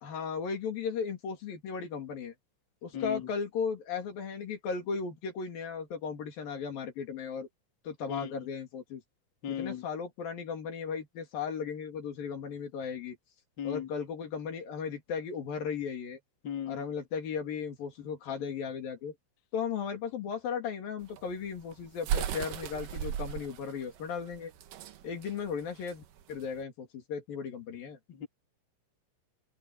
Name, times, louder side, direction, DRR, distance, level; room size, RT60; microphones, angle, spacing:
voice 1, 0.0-2.3 2.8-7.5 7.8-9.0 9.5-13.2 13.6-16.2 16.7-19.2 19.5-24.5 25.0-28.0, left 6 dB, 55° left, 4.2 m, -36 dB
voice 2, 9.4-9.8 13.6-13.9 16.4-16.8 28.2-28.3, left 9 dB, 35° left, 1.9 m, -36 dB
sound 1, 21.0-26.6, right 9 dB, 65° right, 2.3 m, -36 dB
omnidirectional pair, 5.3 m